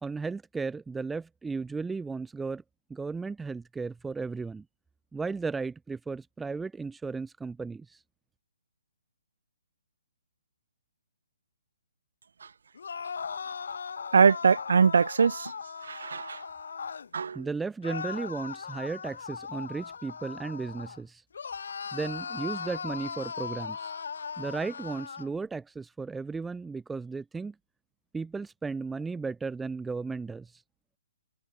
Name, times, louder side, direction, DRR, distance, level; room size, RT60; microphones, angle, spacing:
voice 1, 0.0-2.6 2.9-4.6 5.1-8.0 17.3-21.2 21.9-23.9 24.4-27.5 28.1-30.6, right 4 dB, 5° right, 2.1 m, -35 dB
sound 1, 12.7-17.1 17.8-21.0 21.3-25.3, left 6 dB, 65° left, 3.9 m, -38 dB
voice 2, 14.1-15.5 15.9-16.4 17.1-17.4, right 6 dB, 65° right, 1.0 m, -22 dB
figure-of-eight pair, 130°, 0 cm